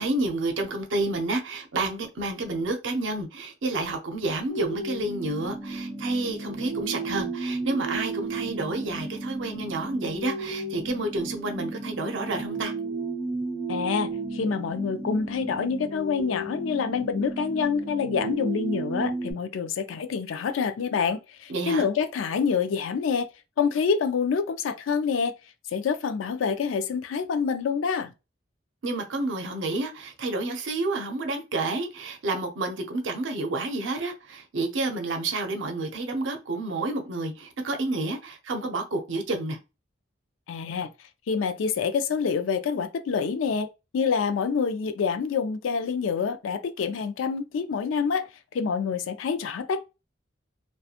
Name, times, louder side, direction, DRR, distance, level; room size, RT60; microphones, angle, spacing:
voice 1, 0.0-12.7 21.5-21.9 28.8-39.6, right 2 dB, 75° right, 0.6 m, -30 dB
sound 1, 4.5-19.3, right 2 dB, 10° right, 1.0 m, -33 dB
voice 2, 13.7-23.3 23.6-25.3 25.7-28.1 40.5-40.9 41.3-43.7 43.9-48.3 48.5-49.8, left 6 dB, 85° left, 0.4 m, -27 dB
2.8 x 2.2 x 2.4 m
head